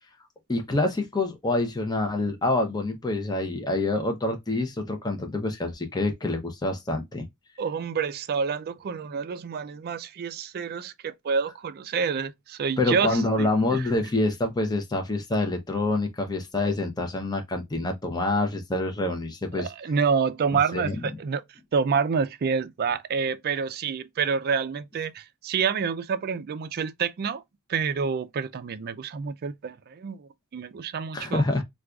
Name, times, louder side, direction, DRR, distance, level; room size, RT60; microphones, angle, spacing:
voice 1, 0.5-7.3 12.8-19.7 20.7-21.0 31.1-31.6, left 2 dB, 20° left, 0.5 m, -26 dB
voice 2, 7.6-13.8 19.6-21.4 21.7-27.4 27.7-31.4, right 6 dB, 45° right, 0.4 m, -28 dB
4.6 x 2.3 x 2.2 m
head